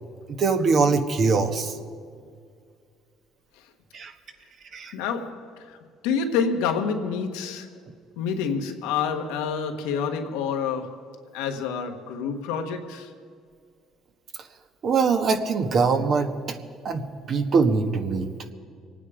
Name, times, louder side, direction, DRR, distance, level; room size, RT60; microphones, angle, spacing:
voice 1, 0.3-1.8 3.9-4.1 4.7-4.9 14.8-16.3 16.8-17.0 17.3-18.3, right 4 dB, 55° right, 1.5 m, -22 dB
voice 2, 4.9-5.8 6.0-7.7 8.2-11.0 11.3-13.1, left 6 dB, 90° left, 1.3 m, -28 dB
24.5 x 9.3 x 5.0 m
supercardioid pair, 85°, 0 cm